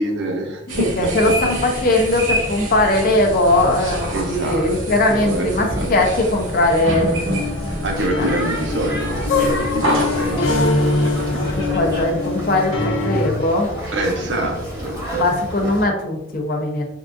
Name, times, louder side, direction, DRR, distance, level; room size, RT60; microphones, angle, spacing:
voice 1, 0.0-1.3 4.1-4.8 5.1-5.9 7.8-10.6 13.1-13.2 13.9-15.3 15.6-15.7, right 1 dB, 65° right, 2 dB, 0.6 m, -25 dB
sound 1, 0.7-12.1, right 1 dB, 85° right, 0.9 m, -27 dB
voice 2, 0.8-7.3 8.2-8.3 11.3-13.7 15.1-16.8, left 2 dB, 45° left, 2 dB, 0.5 m, -19 dB
sound 2, 7.3-13.3, left 3 dB, 90° left, 0.6 m, -23 dB
sound 3, 7.9-15.8, right 1 dB, 20° right, 1.2 m, -31 dB
3.6 x 2.3 x 2.4 m, 0.80 s
head